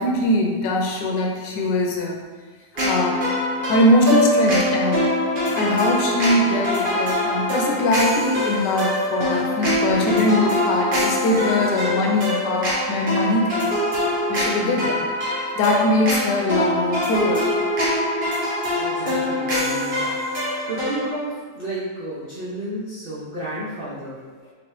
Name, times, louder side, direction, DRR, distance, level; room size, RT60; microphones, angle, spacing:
voice 1, 0.0-2.2 2.8-3.2 3.7-5.1 5.5-13.7 14.3-14.9 15.5-17.5 19.9-20.2, left 1 dB, 80° left, 1 dB, 1.2 m, -21 dB
sound 1, 2.8-21.1, left 1 dB, 40° right, 0.9 m, -23 dB
voice 2, 14.8-15.1 18.7-20.1 20.7-24.5, right 1 dB, 60° right, -10 dB, 0.6 m, -32 dB
3.4 x 3.0 x 3.0 m, 1.4 s
omnidirectional pair, 1.8 m